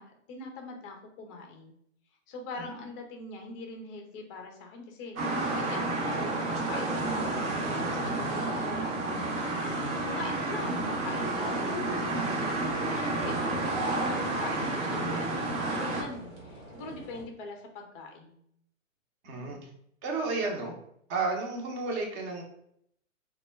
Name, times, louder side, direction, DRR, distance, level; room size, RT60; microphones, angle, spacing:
voice 1, 0.0-1.7 2.3-12.4 12.8-18.4 19.2-19.7, left 3 dB, 25° left, 4 dB, 0.4 m, -43 dB
sound 1, 5.2-16.0, right 2 dB, 65° right, 1.0 m, -30 dB
sound 2, 6.9-17.2, right 1 dB, 85° right, 1.1 m, -47 dB
voice 2, 19.2-19.7 20.0-20.7 21.1-22.4, right 3 dB, 35° right, 1 dB, 0.7 m, -32 dB
2.2 x 2.1 x 3.2 m, 0.70 s
hypercardioid pair, 115°, 39 cm